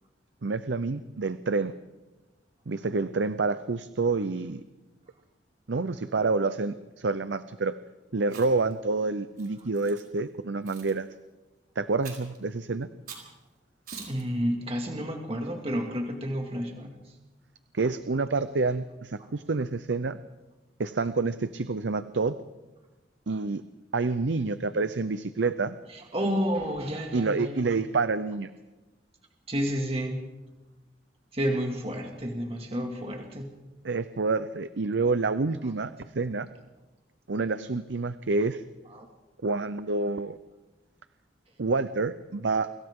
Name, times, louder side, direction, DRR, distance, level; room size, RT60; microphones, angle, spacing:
voice 1, 0.4-1.7 2.7-4.6 5.7-7.7 8.1-11.1 11.8-12.9 17.7-20.2 20.8-22.3 23.3-23.6 23.9-25.8 27.1-28.5 33.8-36.5 37.3-38.6 39.4-40.4 41.6-42.7, right 3 dB, 90° right, 12 dB, 0.7 m, -28 dB
Chewing mastication, 8.2-8.7 9.4-10.0 10.7-10.9 12.0-12.4 13.1-13.3 13.9-14.2, right 5 dB, 55° right, 5.3 m, -44 dB
voice 2, 14.1-16.9 25.9-27.7 29.5-30.2 31.3-33.5 38.9-39.1, equal, 35° right, 1 dB, 2.2 m, -30 dB
29.0 x 25.5 x 3.8 m, 1.1 s
head